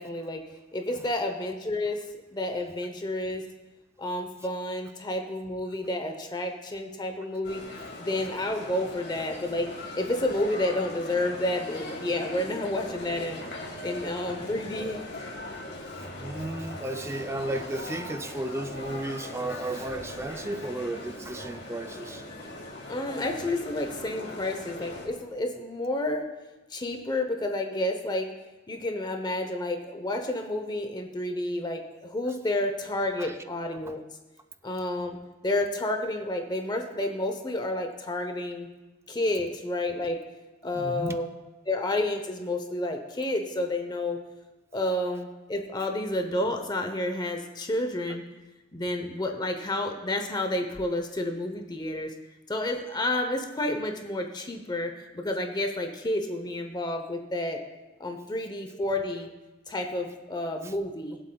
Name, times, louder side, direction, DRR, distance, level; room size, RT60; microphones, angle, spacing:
voice 1, 0.0-2.1 2.3-3.4 4.0-7.6 8.0-13.4 13.8-15.0 22.9-26.3 26.7-28.3 28.7-34.0 34.6-35.2 35.4-38.7 39.1-40.2 40.6-41.3 41.7-44.2 44.7-48.2 48.7-52.1 52.5-57.6 58.0-59.3 59.7-61.2, left 1 dB, 20° left, 4 dB, 0.8 m, -30 dB
sound 1, 7.4-25.1, left 1 dB, 60° left, 2.2 m, -40 dB
voice 2, 16.1-22.3 33.2-33.3 33.9-34.0 40.7-41.2 60.6-60.7, right 1 dB, 15° right, 8 dB, 0.5 m, -34 dB
21.5 x 7.7 x 2.3 m, 1.1 s
head